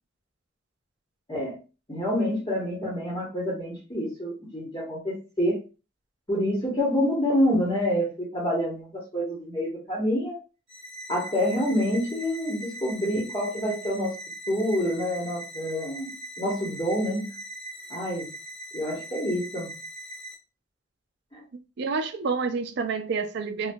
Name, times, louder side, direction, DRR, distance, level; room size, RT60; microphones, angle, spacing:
voice 1, 1.9-5.6 6.3-8.9 9.1-10.4 11.1-14.1 14.5-16.1 16.4-17.3 17.9-18.3 18.7-19.7 21.3-21.4, equal, 25° left, 1.0 m, -27 dB
sound 1, 10.7-20.4, right 1 dB, 25° right, 1.3 m, -41 dB
voice 2, 21.8-23.7, right 4 dB, 60° right, 0.4 m, -28 dB
4.2 x 2.2 x 2.3 m
head